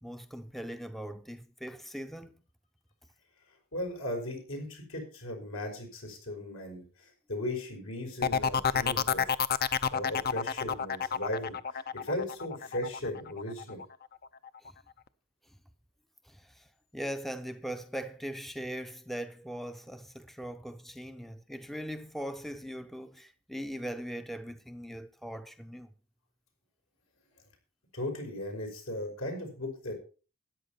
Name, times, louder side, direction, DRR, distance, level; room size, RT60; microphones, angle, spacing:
voice 1, 0.0-2.4 9.7-9.9 14.6-14.7 15.5-15.6 16.2-25.9, equal, ahead, 0.5 m, -40 dB
voice 2, 3.7-9.4 9.9-13.8 27.9-29.9, left 1 dB, 80° left, 5.6 m, -37 dB
sound 1, 8.2-13.8 14.2-14.7, left 7 dB, 45° left, 0.6 m, -29 dB
13.5 x 10.0 x 4.3 m
head